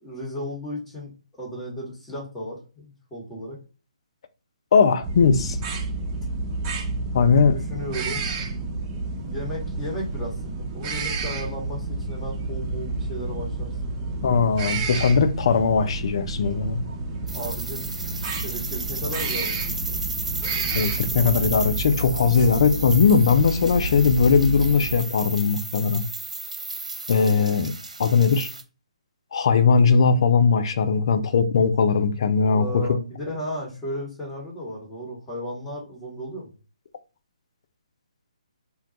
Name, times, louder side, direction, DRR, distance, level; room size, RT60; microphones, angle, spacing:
voice 1, 0.0-3.6 7.5-8.3 9.2-13.7 17.3-17.9 18.4-19.6 19.9-20.0 32.3-36.5, equal, 5° left, 1.2 m, -34 dB
voice 2, 4.7-5.6 7.1-7.6 14.2-16.8 20.7-26.0 27.1-27.7 28.0-28.5 29.3-32.9, left 5 dB, 50° left, 0.4 m, -19 dB
sound 1, 5.0-24.9, right 3 dB, 25° right, 0.5 m, -30 dB
sound 2, 17.3-28.6, right 3 dB, 80° right, 0.6 m, -34 dB
2.3 x 2.3 x 3.9 m
figure-of-eight pair, 140°, 4 cm